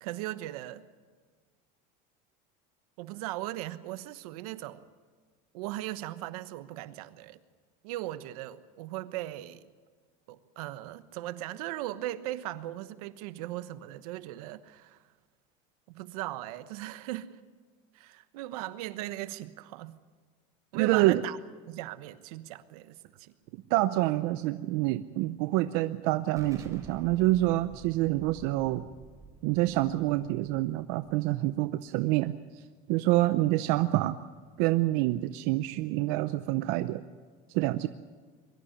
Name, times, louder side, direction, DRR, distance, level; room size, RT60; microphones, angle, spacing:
voice 1, 0.0-0.8 3.0-4.9 5.5-7.4 7.8-9.6 10.3-15.0 15.9-17.3 17.9-20.0 20.7-21.4 21.7-23.3, right 15 dB, 85° right, 13 dB, 1.2 m, -38 dB
voice 2, 20.7-21.2 23.5-28.9 29.4-32.6 32.9-34.2 34.6-37.0 37.5-37.9, right 17 dB, 65° right, 11 dB, 0.7 m, -27 dB
Explosion, 26.4-31.8, right 4 dB, 15° right, 3.9 m, -51 dB
23.0 x 13.0 x 9.9 m, 1.5 s
cardioid pair, 140°, 19 cm